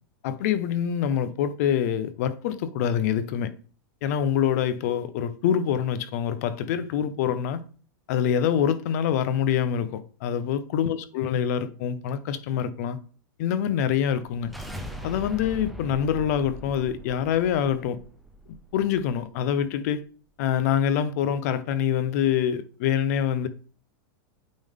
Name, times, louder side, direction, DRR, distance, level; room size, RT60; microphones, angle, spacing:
voice 1, 0.2-3.5 4.0-7.6 8.1-13.0 13.4-14.5 15.0-18.0 18.7-20.0 20.4-23.5, left 9 dB, 50° left, 0.6 m, -25 dB
sound 1, 14.1-19.2, equal, ahead, 0.5 m, -41 dB
8.7 x 3.7 x 3.5 m
supercardioid pair, 170°, 12 cm